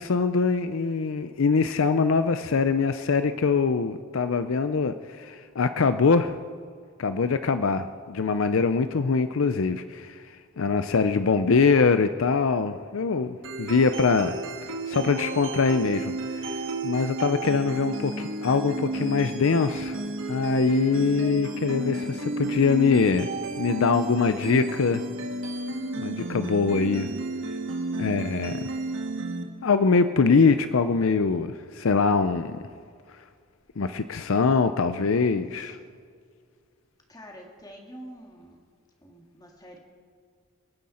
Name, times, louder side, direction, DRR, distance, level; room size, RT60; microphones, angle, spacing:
voice 1, 0.0-6.3 7.0-10.2 10.6-14.4 14.9-20.0 20.3-23.3 23.6-25.0 26.0-27.1 28.0-28.6 29.6-32.6 33.8-35.8, left 4 dB, 65° left, 10 dB, 0.5 m, -23 dB
sound 1, 13.4-29.4, right 2 dB, 60° right, 1.6 m, -32 dB
voice 2, 37.1-38.6 39.0-39.8, equal, 20° left, 1 dB, 2.1 m, -46 dB
28.0 x 9.5 x 4.3 m, 2.1 s
head